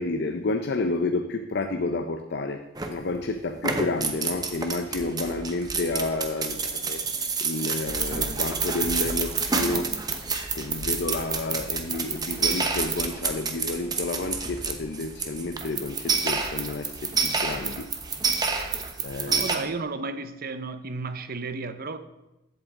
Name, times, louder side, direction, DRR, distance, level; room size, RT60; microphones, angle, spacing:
voice 1, 0.0-7.0 7.4-9.9 10.5-17.9 19.0-19.5, left 2 dB, 55° left, 0.6 m, -30 dB
sound 1, 2.8-3.2 3.5-19.6, right 4 dB, 20° right, 0.8 m, -29 dB
voice 2, 19.3-22.0, right 3 dB, 50° right, 0.7 m, -33 dB
14.5 x 8.1 x 3.7 m
head